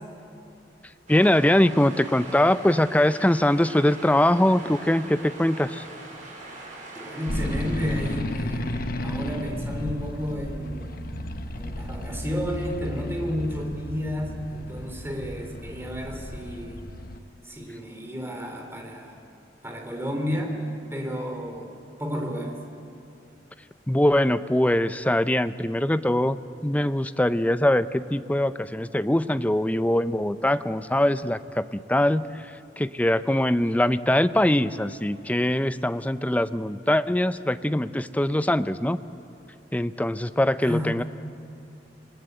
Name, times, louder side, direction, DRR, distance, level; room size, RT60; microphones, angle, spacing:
voice 1, 1.1-5.9 23.9-26.4 26.6-39.0 39.7-41.0, left 1 dB, 10° left, 12 dB, 0.5 m, -22 dB
sound 1, 1.1-8.2, right 2 dB, 45° right, 5.4 m, -42 dB
voice 2, 6.9-11.0 11.5-16.9 17.4-19.2 19.6-22.6 40.6-41.0, equal, 15° right, 3 dB, 3.4 m, -32 dB
sound 2, 7.3-17.2, left 1 dB, 50° left, 1.2 m, -33 dB
28.0 x 20.0 x 8.1 m, 2.5 s
head